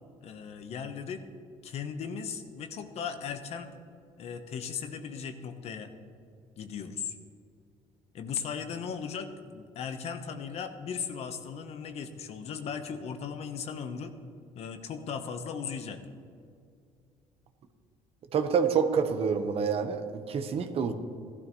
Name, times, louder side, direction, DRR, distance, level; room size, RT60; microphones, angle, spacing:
voice 1, 0.2-1.2 1.6-3.7 4.2-5.9 6.6-7.1 8.1-14.1 14.5-16.0, left 6 dB, 60° left, 8 dB, 1.1 m, -37 dB
voice 2, 18.3-20.9, right 6 dB, 55° right, 8 dB, 1.1 m, -27 dB
16.5 x 12.0 x 3.1 m, 2.3 s
cardioid pair, 95°, 12 cm